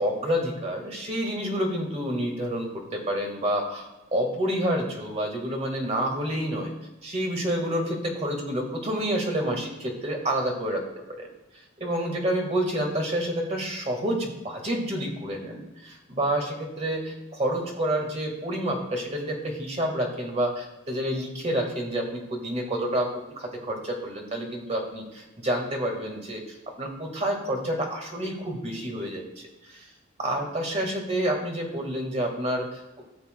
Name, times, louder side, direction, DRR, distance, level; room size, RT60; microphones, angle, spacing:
voice 1, 0.0-6.7 7.0-10.8 11.2-11.3 11.8-29.2 29.6-29.9 30.2-33.0, right 1 dB, 30° right, 1 dB, 1.6 m, -29 dB
14.0 x 7.1 x 2.2 m, 1.0 s
head